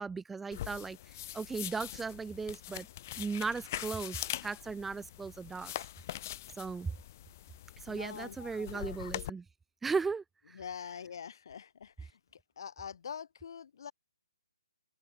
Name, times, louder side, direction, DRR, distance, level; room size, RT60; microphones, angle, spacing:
voice 1, 0.0-2.9 3.2-5.7 6.6-6.9 7.8-9.4 9.8-10.6, right 4 dB, 5° right, 0.6 m, -37 dB
sound 1, 0.5-9.3, left 13 dB, 35° left, 0.5 m, -43 dB
voice 2, 7.9-9.0 10.5-12.2 12.6-13.9, left 7 dB, 55° left, 1.9 m, -45 dB
open air
hypercardioid pair, 150°, 3 cm